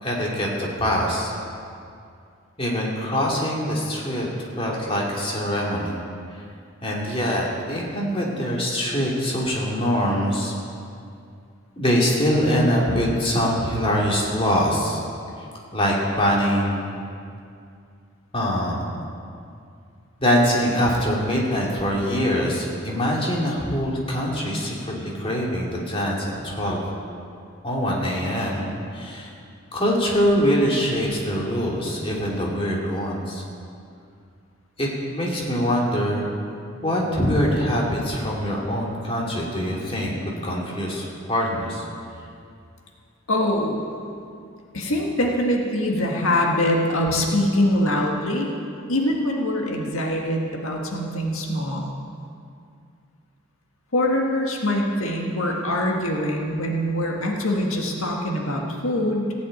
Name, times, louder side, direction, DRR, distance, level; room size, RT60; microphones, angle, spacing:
voice 1, 0.0-1.3 2.6-6.0 6.3-6.4 6.8-10.5 11.8-15.0 15.7-17.0 18.3-18.9 20.2-26.8 27.6-29.3 29.7-33.4 34.8-36.3 36.8-41.8, equal, 25° left, -3 dB, 2.6 m, -23 dB
voice 2, 43.3-43.8 44.7-48.5 48.9-51.9 53.9-59.3, left 1 dB, 85° left, 0 dB, 1.8 m, -23 dB
15.5 x 8.2 x 9.0 m, 2.4 s
head